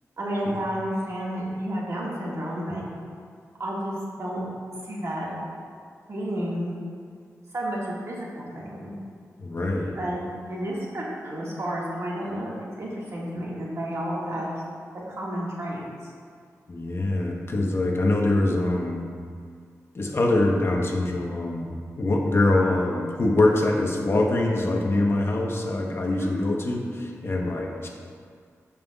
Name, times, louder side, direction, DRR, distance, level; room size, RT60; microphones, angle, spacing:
voice 1, 0.2-2.8 3.6-4.5 4.8-5.3 6.1-6.7 7.5-9.0 9.9-14.5 15.1-16.1 26.1-26.4, equal, 55° right, -5 dB, 1.7 m, -31 dB
voice 2, 9.4-10.0 16.7-19.0 19.9-27.9, left 2 dB, 45° left, 0 dB, 1.0 m, -24 dB
13.5 x 5.5 x 2.3 m, 2.1 s
wide cardioid pair, 100°, 6 cm